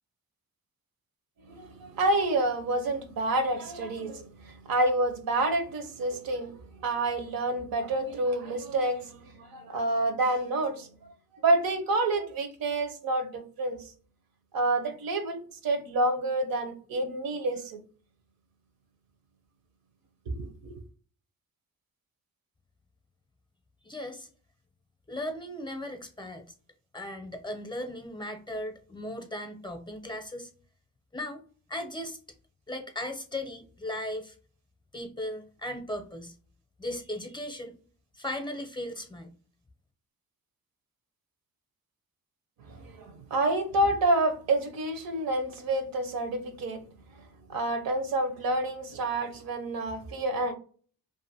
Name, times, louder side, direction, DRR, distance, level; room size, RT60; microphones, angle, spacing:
voice 1, 1.5-10.9 11.4-13.8 14.5-17.8 20.3-20.8 42.7-46.8 47.5-50.5, right 2 dB, 80° right, 0.7 m, -28 dB
voice 2, 23.8-24.3 25.1-26.4 26.9-30.5 31.1-31.4 31.7-32.2 32.7-34.4 34.9-36.4 36.8-37.8 38.1-39.3, left 1 dB, 15° left, 0.5 m, -37 dB
2.5 x 2.5 x 2.7 m
cardioid pair, 90°, 35 cm